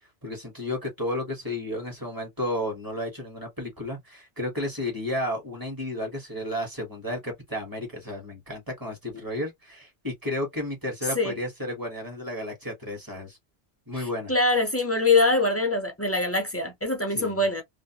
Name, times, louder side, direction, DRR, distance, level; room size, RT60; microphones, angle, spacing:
voice 1, 0.2-13.4 13.9-14.3 17.1-17.4, left 1 dB, 20° right, 1.1 m, -32 dB
voice 2, 13.9-17.6, left 2 dB, 20° left, 0.4 m, -24 dB
2.5 x 2.1 x 2.8 m
omnidirectional pair, 1.1 m